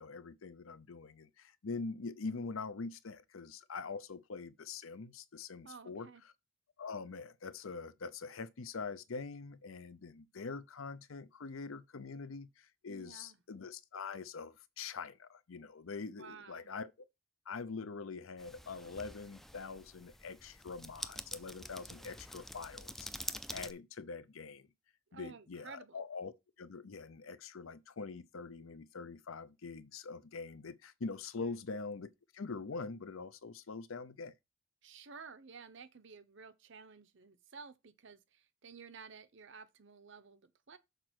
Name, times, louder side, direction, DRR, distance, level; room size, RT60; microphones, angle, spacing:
voice 1, 0.0-6.1 6.8-16.9 17.5-24.7 25.1-34.3, left 4 dB, 75° left, 0.7 m, -44 dB
voice 2, 5.6-6.2 12.9-13.4 16.2-16.7 25.1-26.0 31.4-31.6 34.8-40.8, right 5 dB, 60° right, 0.8 m, -53 dB
sound 1, 18.4-23.7, left 1 dB, ahead, 0.4 m, -47 dB
6.7 x 4.4 x 6.1 m
head